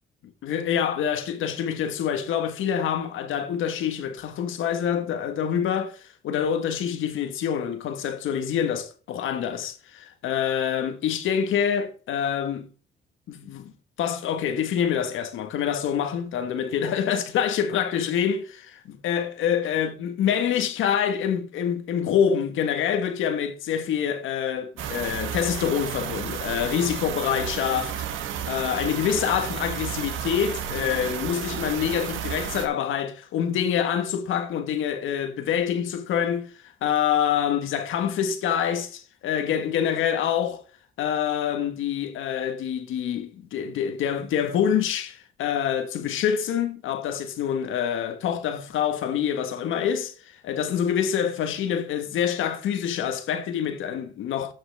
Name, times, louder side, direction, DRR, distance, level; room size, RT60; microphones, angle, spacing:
voice 1, 0.2-12.7 13.3-13.7 14.0-40.6 41.0-54.5, left 8 dB, 85° left, 1.6 m, -26 dB
sound 1, 24.8-32.7, right 8 dB, 80° right, 1.3 m, -32 dB
12.5 x 5.9 x 3.4 m
cardioid pair, 90°, 20 cm